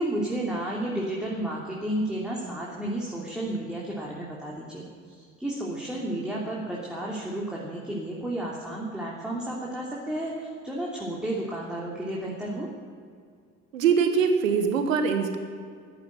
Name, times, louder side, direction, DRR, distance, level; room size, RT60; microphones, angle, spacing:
voice 1, 0.0-4.8 5.1-12.7, right 1 dB, ahead, -5 dB, 3.0 m, -32 dB
voice 2, 13.7-15.4, right 6 dB, 75° right, 7 dB, 1.4 m, -23 dB
14.0 x 10.0 x 8.8 m, 2.2 s
figure-of-eight pair, 50°, 39 cm